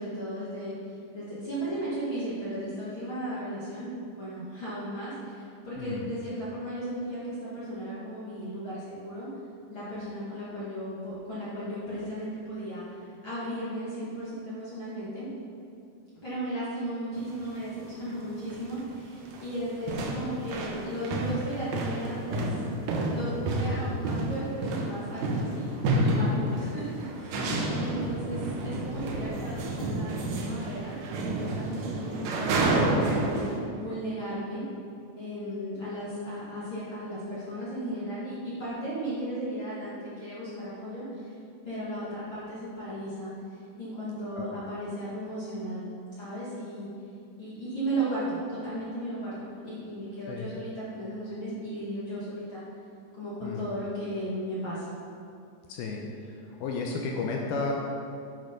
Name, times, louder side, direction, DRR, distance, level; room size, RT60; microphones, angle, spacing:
voice 1, 0.0-9.3 9.7-15.3 16.2-22.5 22.9-28.4 28.6-33.4 33.8-34.6 35.1-41.3 41.6-45.8 46.1-46.9 47.4-52.6 53.1-54.9, right 1 dB, 50° left, -10 dB, 1.5 m, -35 dB
voice 2, 5.8-6.1 27.4-27.9 44.4-44.5 50.3-50.5 53.4-53.7 55.7-57.7, left 4 dB, 85° left, 0 dB, 2.2 m, -33 dB
sound 1, 17.1-17.3 18.1-18.2 18.5-18.9 19.2-33.6, right 2 dB, 85° right, 1.9 m, -30 dB
11.0 x 6.4 x 5.3 m, 2.5 s
omnidirectional pair, 5.2 m